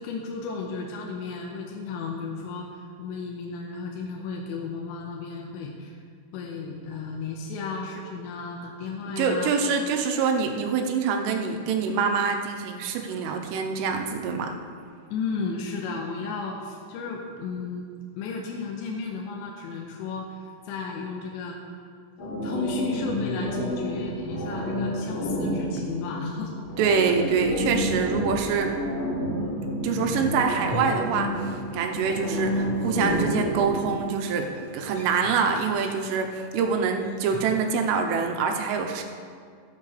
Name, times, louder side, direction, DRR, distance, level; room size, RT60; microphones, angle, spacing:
voice 1, 0.0-6.0 6.3-9.5 15.1-21.6 22.4-26.7 27.0-27.3, left 4 dB, 80° left, -1 dB, 3.0 m, -34 dB
voice 2, 9.2-14.5 26.8-28.8 29.8-39.0, right 5 dB, 85° right, 3 dB, 3.4 m, -25 dB
sound 1, 22.2-34.0, equal, 40° left, 3.5 m, -29 dB
sound 2, 30.6-31.8 32.1-37.7, left 4 dB, 55° left, 4.8 m, -42 dB
16.0 x 8.6 x 3.3 m, 2.1 s
omnidirectional pair, 5.6 m